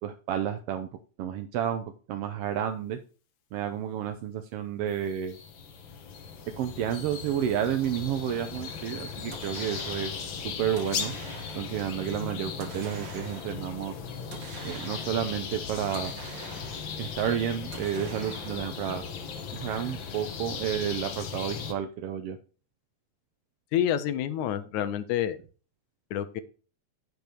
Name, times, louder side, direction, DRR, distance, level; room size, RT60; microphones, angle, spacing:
voice 1, 0.0-0.9 1.2-3.0 3.5-5.4 6.6-10.1 10.6-11.1 11.5-13.9 14.6-16.1 17.0-19.0 19.5-22.4, right 9 dB, 75° right, 8 dB, 1.4 m, -31 dB
sound 1, 5.0-21.7, left 6 dB, 60° left, 1.4 m, -38 dB
sound 2, 9.3-10.3 10.8-11.8 12.6-13.6 14.3-15.4 15.9-17.0 17.7-18.8, right 4 dB, 50° right, 1.6 m, -45 dB
voice 2, 23.7-25.4 26.1-26.4, left 10 dB, 80° left, 12 dB, 2.1 m, -28 dB
10.5 x 5.1 x 4.5 m, 0.36 s
omnidirectional pair, 3.5 m